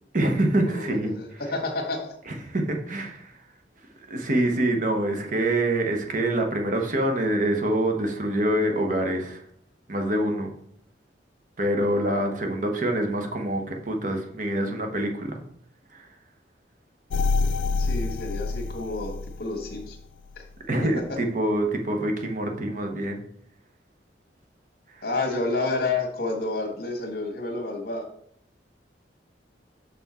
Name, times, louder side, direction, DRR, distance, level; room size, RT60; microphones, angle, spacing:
voice 1, 0.1-1.4 2.3-3.3 4.1-9.4 9.9-10.5 11.6-15.4 15.9-16.1 20.7-23.2 24.9-25.0, right 1 dB, 45° right, 3 dB, 1.1 m, -25 dB
voice 2, 0.7-2.1 17.8-20.0 20.4-20.5 25.0-28.0, left 3 dB, 55° left, 2 dB, 1.6 m, -30 dB
sound 1, 17.1-20.0 20.4-20.5, left 3 dB, 85° left, 0.4 m, -27 dB
6.1 x 5.9 x 4.2 m, 0.68 s
head